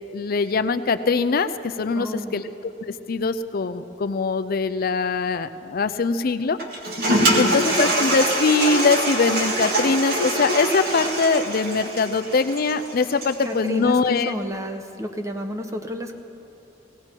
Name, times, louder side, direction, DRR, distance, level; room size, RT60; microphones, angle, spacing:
voice 1, 0.1-2.4 2.9-6.6 7.3-14.3, left 4 dB, 50° left, 11 dB, 0.5 m, -22 dB
voice 2, 1.9-2.4 7.1-7.7 13.4-16.1, equal, 15° right, 5 dB, 0.9 m, -31 dB
Toilet flush, 6.6-13.5, right 1 dB, 55° right, 1.8 m, -24 dB
18.0 x 18.0 x 4.5 m, 2.8 s
head